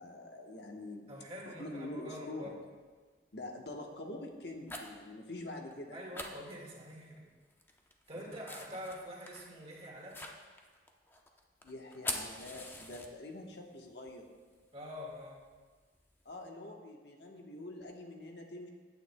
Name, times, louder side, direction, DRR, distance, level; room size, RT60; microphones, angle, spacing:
voice 1, 0.0-1.1 1.5-2.6 3.3-6.0 8.2-8.3 11.6-14.3 16.2-18.7, left 2 dB, 70° left, 2 dB, 1.1 m, -45 dB
voice 2, 1.1-2.5 5.9-7.2 8.1-10.3 14.7-15.4, equal, 35° right, -2 dB, 1.8 m, -45 dB
sound 1, 1.5-1.6 2.4-2.7 3.2-3.5 4.3-5.1 5.4-5.5 5.7-5.8 6.1-7.2 7.5-13.5 13.9-16.3, left 2 dB, 15° left, 0.7 m, -45 dB
15.5 x 9.1 x 2.2 m, 1.4 s
head